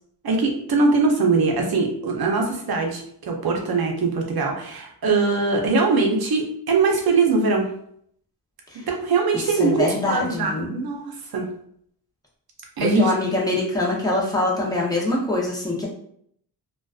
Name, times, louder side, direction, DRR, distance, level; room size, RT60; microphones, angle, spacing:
voice 1, 0.2-7.7 8.7-11.5 12.8-13.1, right 4 dB, 60° right, 1 dB, 0.6 m, -22 dB
voice 2, 9.6-10.7 12.8-15.9, left 2 dB, 10° left, -4 dB, 0.6 m, -24 dB
2.4 x 2.2 x 2.3 m, 0.67 s
wide cardioid pair, 155°, 42 cm